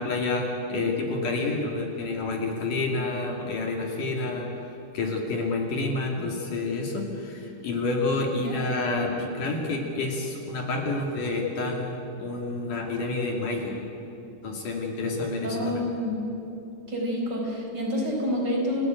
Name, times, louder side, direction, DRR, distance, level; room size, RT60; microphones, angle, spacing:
voice 1, 0.0-4.5 4.9-13.8 14.4-15.9, left 3 dB, 55° left, 1 dB, 3.9 m, -29 dB
voice 2, 15.4-16.2 16.9-18.9, left 1 dB, 25° right, -2 dB, 5.2 m, -28 dB
29.5 x 16.5 x 9.2 m, 2.9 s
omnidirectional pair, 4.6 m